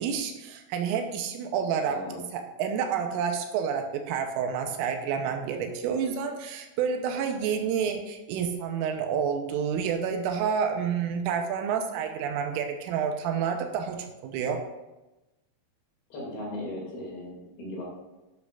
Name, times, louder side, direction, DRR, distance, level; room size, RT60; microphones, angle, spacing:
voice 1, 0.0-2.1 2.3-14.6, right 7 dB, 85° right, 5 dB, 3.5 m, -29 dB
voice 2, 1.8-2.2 16.1-17.8, left 1 dB, 55° left, -4 dB, 4.3 m, -37 dB
11.5 x 11.5 x 2.6 m, 1.0 s
omnidirectional pair, 5.8 m